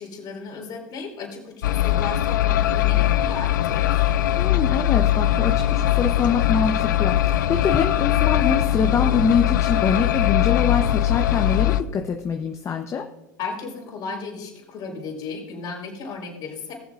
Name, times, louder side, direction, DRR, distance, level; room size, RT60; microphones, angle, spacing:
voice 1, 0.0-4.1 13.4-16.7, left 4 dB, 45° left, -1 dB, 4.3 m, -35 dB
sound 1, 1.6-11.8, left 13 dB, 80° left, 0.5 m, -21 dB
voice 2, 4.4-13.0, left 6 dB, 30° left, 4 dB, 0.8 m, -24 dB
20.0 x 7.1 x 2.5 m, 0.97 s
hypercardioid pair, 95°, 10 cm